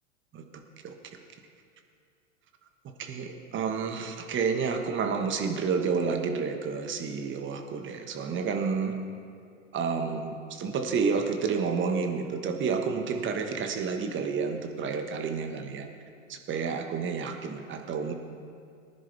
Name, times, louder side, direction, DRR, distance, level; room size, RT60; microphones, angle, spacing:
voice 1, 0.8-1.2 3.0-8.9 9.7-15.9 16.3-18.1, right 5 dB, 30° right, 5 dB, 1.5 m, -30 dB
19.5 x 10.5 x 3.5 m, 2.3 s
hypercardioid pair, 100°, 38 cm